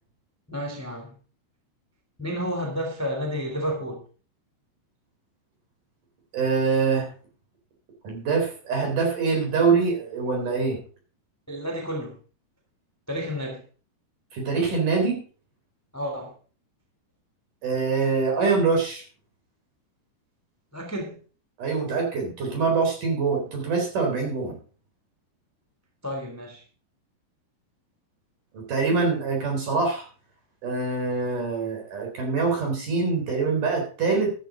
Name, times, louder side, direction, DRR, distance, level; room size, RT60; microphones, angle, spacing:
voice 1, 0.5-1.1 2.2-4.0 11.5-12.1 13.1-13.6 15.9-16.3 20.7-21.2 26.0-26.6, equal, 5° left, 2 dB, 2.2 m, -31 dB
voice 2, 6.3-7.1 8.0-10.8 14.3-15.2 17.6-19.1 21.6-24.6 28.5-30.1 30.6-34.3, right 4 dB, 50° right, 2 dB, 5.2 m, -24 dB
13.5 x 11.5 x 3.8 m, 0.38 s
omnidirectional pair, 5.0 m